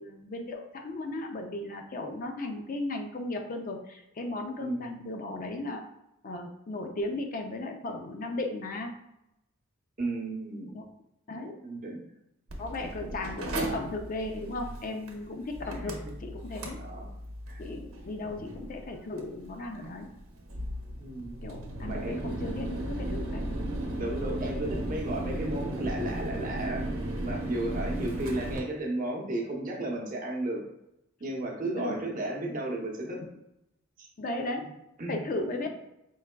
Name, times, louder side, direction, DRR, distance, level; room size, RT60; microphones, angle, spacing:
voice 1, 0.0-5.8 6.2-8.9 10.7-10.9 11.3-11.6 12.6-16.8 17.6-20.1 21.4-23.4 27.7-28.0 31.6-32.1 34.2-34.7 35.1-35.7, left 2 dB, 40° left, 4 dB, 0.4 m, -36 dB
voice 2, 10.0-10.7 11.4-12.0 12.9-13.1 15.7-16.1 16.8-17.1 17.5-17.6 21.0-21.3 21.9-22.5 23.9-26.9 27.2-30.6 31.2-33.2 34.0-34.1 35.0-35.2, right 1 dB, 40° right, 0 dB, 0.8 m, -34 dB
Mechanical fan, 12.5-28.6, right 1 dB, 85° right, 0.8 m, -36 dB
4.6 x 3.4 x 2.2 m, 0.84 s
head